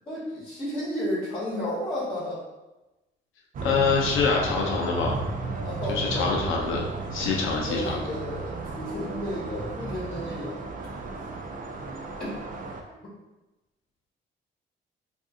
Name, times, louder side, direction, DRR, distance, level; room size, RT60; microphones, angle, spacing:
voice 1, 0.1-2.4 5.6-6.3 7.1-10.5 10.8-10.9 12.2-12.4, left 1 dB, 30° left, -9 dB, 1.2 m, -32 dB
sound 1, 3.5-12.8, right 3 dB, 45° right, 0.5 m, -34 dB
voice 2, 3.6-5.2 5.9-6.8 7.1-8.0, left 4 dB, 80° left, -1 dB, 0.7 m, -25 dB
2.6 x 2.5 x 3.7 m, 1.0 s
cardioid pair, 90°, 20 cm